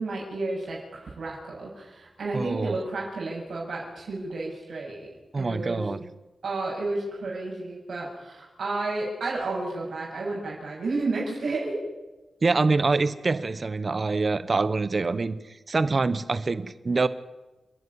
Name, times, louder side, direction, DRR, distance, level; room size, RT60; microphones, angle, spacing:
voice 1, 0.0-5.1 5.4-5.9 6.4-11.8, right 2 dB, 85° right, -3 dB, 7.6 m, -31 dB
voice 2, 2.3-2.8 5.3-6.0 12.4-17.1, right 3 dB, 40° right, 15 dB, 1.1 m, -25 dB
30.0 x 10.5 x 9.8 m, 1.1 s
wide cardioid pair, 125°, 0 cm